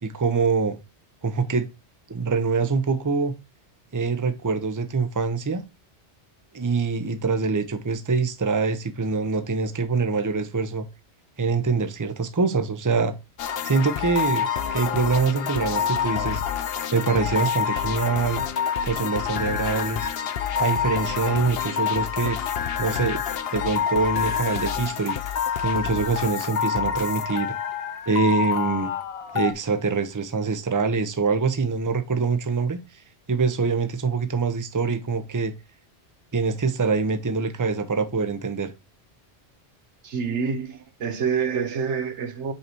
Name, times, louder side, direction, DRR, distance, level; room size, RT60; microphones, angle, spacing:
voice 1, 0.0-0.8 1.2-1.7 2.1-3.3 3.9-5.6 6.5-10.8 11.4-13.1 13.6-16.4 16.9-18.4 18.9-20.1 20.6-22.4 22.8-23.2 23.5-25.2 25.6-27.5 28.1-28.9 29.3-32.8 33.3-35.5 36.3-38.7, right 4 dB, 20° right, 0.7 m, -24 dB
sound 1, 13.4-29.5, left 8 dB, 65° left, 0.9 m, -27 dB
voice 2, 40.0-42.5, right 6 dB, 90° right, 1.3 m, -27 dB
5.6 x 4.8 x 4.4 m
omnidirectional pair, 1.1 m